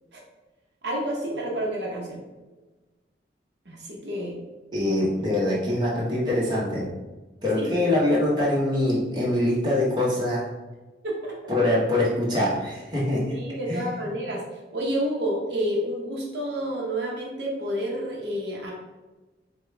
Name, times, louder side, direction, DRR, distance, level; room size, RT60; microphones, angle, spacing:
voice 1, 0.8-2.2 3.7-4.4 4.8-5.0 7.6-7.9 11.0-11.4 13.3-18.7, equal, 70° right, -2 dB, 0.8 m, -30 dB
voice 2, 4.7-6.9 7.4-10.5 11.5-13.3 13.7-13.8, left 1 dB, 25° right, -5 dB, 0.9 m, -24 dB
4.9 x 2.2 x 3.3 m, 1.2 s
head